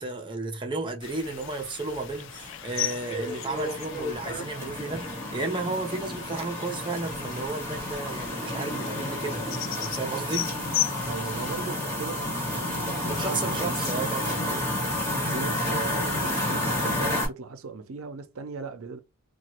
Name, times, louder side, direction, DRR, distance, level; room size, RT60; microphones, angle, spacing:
voice 1, 0.0-9.4 9.8-10.5 13.1-14.6 15.1-15.5, right 3 dB, 25° right, 0.7 m, -33 dB
sound 1, 1.0-11.7, left 13 dB, 60° left, 0.3 m, -37 dB
sound 2, 2.2-17.3, left 1 dB, 15° left, 1.8 m, -31 dB
voice 2, 11.1-13.9 14.4-14.5 15.1-19.0, right 5 dB, 85° right, 0.6 m, -38 dB
2.9 x 2.3 x 2.9 m
head